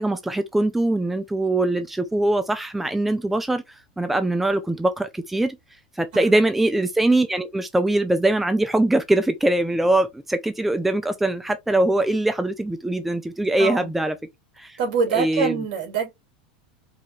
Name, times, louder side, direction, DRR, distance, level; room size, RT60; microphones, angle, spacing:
voice 1, 0.0-3.6 4.0-5.6 6.0-14.1 14.6-14.8 15.1-15.6, right 1 dB, 5° right, 0.5 m, -22 dB
voice 2, 13.6-13.9 14.8-16.1, right 6 dB, 65° right, 2.7 m, -25 dB
4.8 x 2.5 x 3.0 m
supercardioid pair, 120°, 4 cm